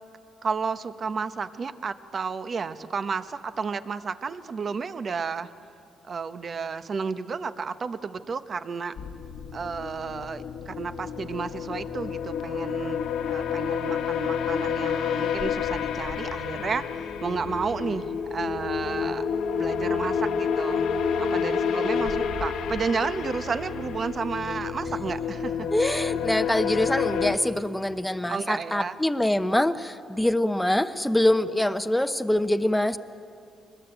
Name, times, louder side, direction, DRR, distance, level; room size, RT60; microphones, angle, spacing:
voice 1, 0.4-5.5 6.1-8.9 9.5-13.0 13.3-19.3 19.5-20.8 21.2-25.7 28.3-29.0, right 5 dB, 45° right, 11 dB, 1.0 m, -32 dB
sound 1, 9.0-27.3, left 6 dB, 80° left, 1.4 m, -29 dB
voice 2, 25.7-33.0, left 1 dB, 5° left, 10 dB, 0.9 m, -24 dB
23.5 x 21.0 x 9.0 m, 2.5 s
cardioid pair, 90°, 0 cm